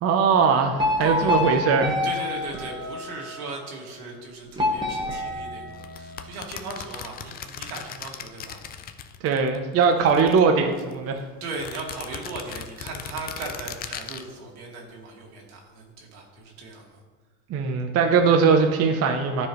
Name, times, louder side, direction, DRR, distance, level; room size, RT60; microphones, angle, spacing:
voice 1, 0.0-2.0 9.2-11.2 17.5-19.5, right 5 dB, 35° right, 4 dB, 0.7 m, -20 dB
sound 1, 0.8-3.5 4.6-6.3, left 2 dB, 10° right, 1.2 m, -27 dB
voice 2, 1.0-1.7 2.0-8.6 11.4-17.0, right 3 dB, 75° right, -1 dB, 2.1 m, -38 dB
sound 2, 5.8-9.6 9.8-10.9 11.5-14.2, left 8 dB, 25° left, 0.3 m, -38 dB
12.5 x 4.6 x 3.1 m, 1.4 s
supercardioid pair, 110°, 44 cm